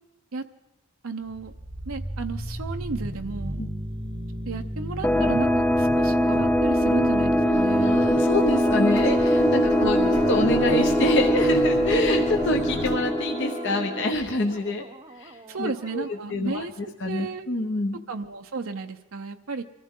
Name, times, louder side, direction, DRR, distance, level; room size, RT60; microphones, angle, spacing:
voice 1, 1.0-1.5 1.9-3.6 4.5-8.0 9.6-10.2 15.5-17.5 18.1-19.6, right 3 dB, 70° right, 5 dB, 0.7 m, -33 dB
sound 1, 1.2-16.2 16.5-16.6, right 1 dB, 20° right, 0.8 m, -36 dB
sound 2, 5.0-14.4, equal, 10° left, 0.5 m, -22 dB
sound 3, 7.5-13.0, left 1 dB, 80° left, 2.3 m, -36 dB
voice 2, 7.8-10.0 10.3-14.9 15.2-16.0 16.3-16.6 17.0-18.0, left 2 dB, 55° left, 2 dB, 1.0 m, -26 dB
25.5 x 15.0 x 3.7 m, 1.1 s
head